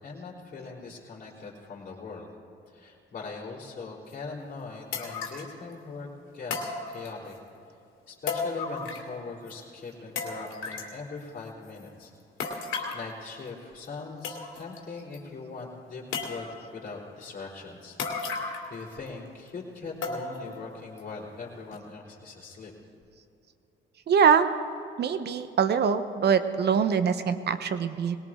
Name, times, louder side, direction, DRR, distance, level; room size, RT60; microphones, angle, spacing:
voice 1, 0.0-2.3 2.7-6.1 6.3-7.4 8.1-12.1 12.9-16.0 16.3-18.0 18.3-22.7, left 4 dB, 45° left, -6 dB, 3.8 m, -41 dB
sound 1, 4.1-4.2 4.9-5.5 6.5-7.4 8.3-9.2 9.5-9.6 10.2-10.9 12.4-13.0 13.8-13.9 14.2-14.8 15.1-15.2 16.1-16.7 18.0-18.8 19.1-19.2 20.0-20.5 21.0-21.1 21.7-21.8, left 4 dB, 80° left, 2.5 m, -34 dB
voice 2, 24.1-24.5 25.0-28.2, right 6 dB, 55° right, 11 dB, 1.0 m, -23 dB
20.5 x 18.5 x 3.7 m, 2.7 s
cardioid pair, 90°, 20 cm